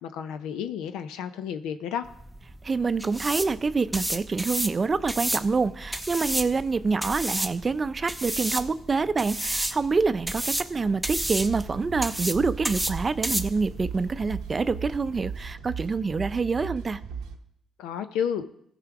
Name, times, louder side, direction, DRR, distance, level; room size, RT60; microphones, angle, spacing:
voice 1, 0.0-2.1 17.8-18.5, left 8 dB, 85° left, 0.5 m, -31 dB
sound 1, 2.1-15.5, right 1 dB, 5° right, 0.8 m, -32 dB
voice 2, 2.6-17.0, right 4 dB, 35° right, 0.5 m, -26 dB
sound 2, 11.1-17.4, right 6 dB, 90° right, 0.8 m, -37 dB
14.5 x 5.0 x 4.8 m
supercardioid pair, 70°, 0 cm